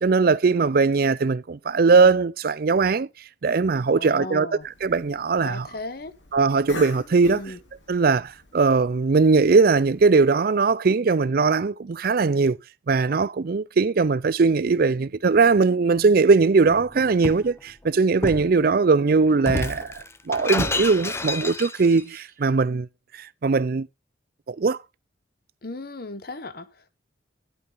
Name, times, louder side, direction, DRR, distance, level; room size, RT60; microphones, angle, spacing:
voice 1, 0.0-3.1 3.4-4.5 4.8-5.7 6.3-7.4 7.9-12.6 12.9-22.9 23.2-23.9 24.5-24.8, right 4 dB, 50° right, 0.4 m, -20 dB
voice 2, 4.0-4.7 5.4-6.1 7.3-7.6 25.6-26.9, left 2 dB, 50° left, 1.0 m, -36 dB
Cough, 4.6-10.1, left 1 dB, 75° left, 2.7 m, -43 dB
Shatter, 16.6-17.5 18.2-18.5 19.4-22.0, left 2 dB, 15° left, 0.5 m, -29 dB
10.5 x 8.6 x 3.9 m
head